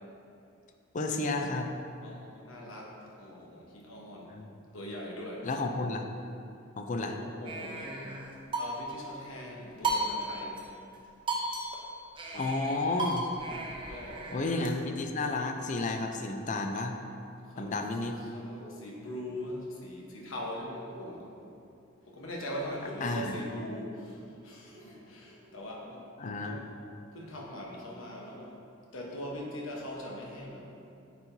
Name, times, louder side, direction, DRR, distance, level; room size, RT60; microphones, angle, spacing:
voice 1, 0.9-1.7 4.3-4.5 5.4-6.1 6.8-7.1 12.3-13.3 14.3-17.3 17.6-18.1 23.0-23.3 26.2-26.6, left 2 dB, 40° left, 4 dB, 0.5 m, -32 dB
voice 2, 2.0-4.4 4.7-5.5 7.0-8.3 8.6-10.6 13.9-14.3 17.5-17.7 18.3-21.4 22.1-26.6 27.1-28.6 28.9-30.7, left 1 dB, 85° left, -2 dB, 1.1 m, -41 dB
sound 1, 7.5-9.1 9.8-10.6 10.9-11.0 11.3-14.7, right 2 dB, 25° right, 0.6 m, -35 dB
sound 2, 18.4-19.5 20.8-21.6 24.7-25.7, equal, 60° right, 1.2 m, -53 dB
9.4 x 4.5 x 2.7 m, 2.6 s
head